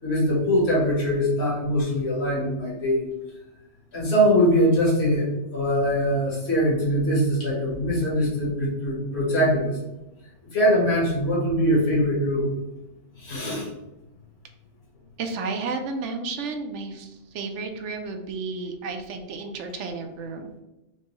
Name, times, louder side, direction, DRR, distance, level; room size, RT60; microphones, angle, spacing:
voice 1, 0.0-3.0 3.9-9.8 10.5-12.5 13.1-13.7, equal, 60° left, -5 dB, 1.6 m, -22 dB
voice 2, 15.2-20.5, right 4 dB, 75° right, 5 dB, 0.9 m, -32 dB
4.4 x 2.2 x 2.9 m, 0.98 s
omnidirectional pair, 1.2 m